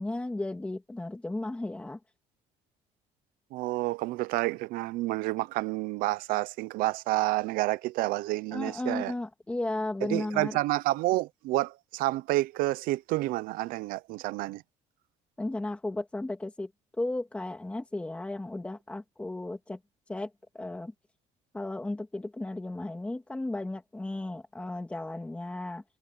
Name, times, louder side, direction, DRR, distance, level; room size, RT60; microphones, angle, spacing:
voice 1, 0.0-2.0 8.5-10.6 15.4-16.7 17.0-19.8 20.1-20.3 20.5-20.9 21.5-25.8, left 2 dB, 10° left, 2.3 m, -34 dB
voice 2, 3.5-9.1 10.1-14.6, right 19 dB, 85° right, 0.8 m, -29 dB
cardioid pair, 155°, 14 cm